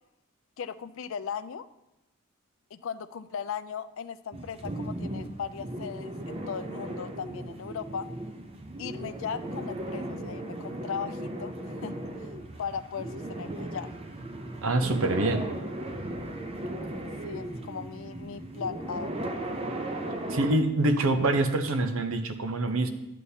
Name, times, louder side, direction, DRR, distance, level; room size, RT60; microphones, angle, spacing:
voice 1, 0.6-1.7 2.7-8.1 8.8-11.5 11.8-11.9 12.2-12.3 12.6-13.9 17.2-19.2, left 7 dB, 65° left, 13 dB, 0.4 m, -37 dB
sound 1, 4.3-20.6, right 1 dB, 25° right, 0.6 m, -36 dB
voice 2, 14.6-15.5 20.3-22.9, right 2 dB, 70° right, 8 dB, 0.7 m, -25 dB
11.0 x 8.3 x 2.8 m, 0.92 s
head